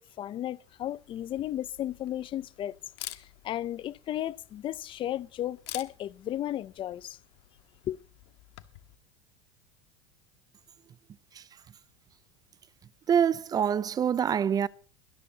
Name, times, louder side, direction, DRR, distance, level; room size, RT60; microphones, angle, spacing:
voice 1, 0.0-2.8 3.1-7.2 7.9-8.0, left 12 dB, 35° left, 0.6 m, -34 dB
Camera, 0.6-9.0, left 19 dB, 75° left, 1.5 m, -49 dB
voice 2, 13.1-14.7, right 8 dB, 25° right, 0.5 m, -25 dB
23.0 x 12.5 x 2.8 m
supercardioid pair, 120°, 15 cm